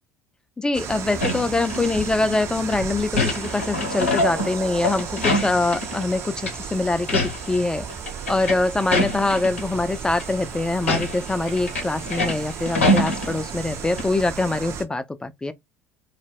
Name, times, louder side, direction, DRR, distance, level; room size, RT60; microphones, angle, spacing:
voice 1, 0.6-7.9 8.3-15.5, left 2 dB, 10° left, 0.3 m, -24 dB
sound 1, 0.7-14.8, right 7 dB, 45° right, 0.6 m, -34 dB
sound 2, 1.2-2.4 2.7-6.1 6.4-6.6 6.9-7.6 7.9-9.6 10.1-10.2 10.8-13.7 14.0-14.1, left 1 dB, 85° left, 0.6 m, -25 dB
2.1 x 2.0 x 3.3 m
figure-of-eight pair, 60°, 7 cm